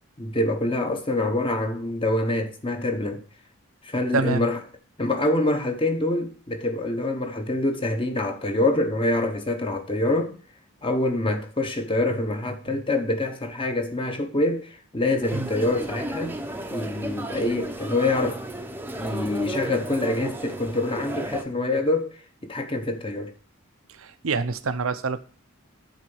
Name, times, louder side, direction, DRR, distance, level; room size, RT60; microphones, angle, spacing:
voice 1, 0.2-3.2 3.8-4.6 5.0-10.3 10.8-16.3 16.7-18.4 19.0-22.1 22.4-23.3, left 2 dB, 25° left, 1.0 m, -25 dB
voice 2, 4.1-4.4 15.3-15.5 23.9-25.2, right 4 dB, 70° right, 0.7 m, -26 dB
sound 1, 15.2-21.4, right 1 dB, 10° right, 0.7 m, -33 dB
9.2 x 4.0 x 7.0 m
head